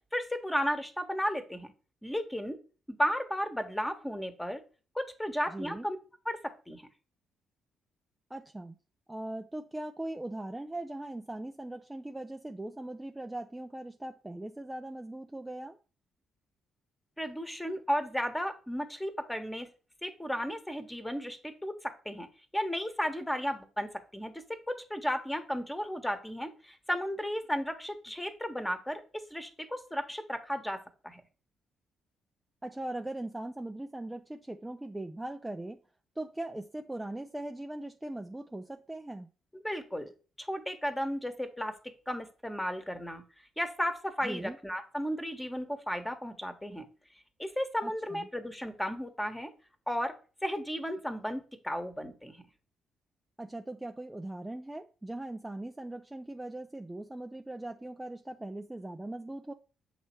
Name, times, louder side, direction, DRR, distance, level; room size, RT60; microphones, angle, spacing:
voice 1, 0.1-1.7 2.0-2.6 2.9-4.6 4.9-6.0 6.2-6.4 6.7-6.9 17.2-19.7 20.0-22.3 22.5-31.2 39.6-40.1 40.4-41.7 42.1-43.2 43.6-46.9 47.4-49.5 49.9-50.1 50.4-52.4, equal, 10° left, 1.3 m, -34 dB
voice 2, 5.5-5.9 8.3-8.8 9.1-15.8 32.6-35.8 36.2-39.3 44.2-44.6 47.8-48.3 53.4-59.5, right 1 dB, 15° right, 0.5 m, -40 dB
7.3 x 3.0 x 4.5 m
figure-of-eight pair, 40°, 0 cm